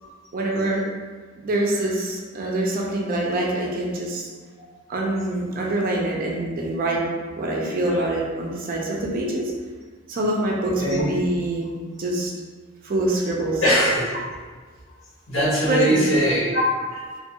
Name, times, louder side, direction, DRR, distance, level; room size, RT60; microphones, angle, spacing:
voice 1, 0.3-0.8 1.4-4.3 4.9-7.0 7.3-9.5 10.1-11.7 12.0-12.3 12.8-13.6 15.6-16.0, right 1 dB, 45° right, -2 dB, 0.5 m, -25 dB
voice 2, 13.6-14.2 15.3-17.2, equal, 75° left, -8 dB, 1.2 m, -22 dB
2.6 x 2.4 x 2.8 m, 1.4 s
head